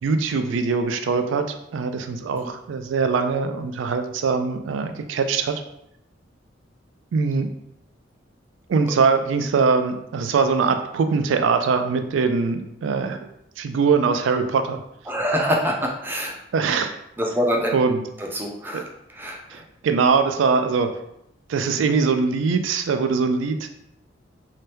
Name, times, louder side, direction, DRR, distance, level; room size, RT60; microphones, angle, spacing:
voice 1, 0.0-5.5 7.1-7.5 8.7-13.3 13.6-14.8 16.5-16.9 17.7-18.0 18.7-18.8 19.5-20.9 21.5-23.7, right 5 dB, 85° right, 8 dB, 0.3 m, -22 dB
voice 2, 15.1-16.4 17.2-17.7 18.3-18.9 19.2-19.6, equal, 10° right, 0 dB, 0.4 m, -25 dB
2.8 x 2.2 x 3.3 m, 0.78 s
head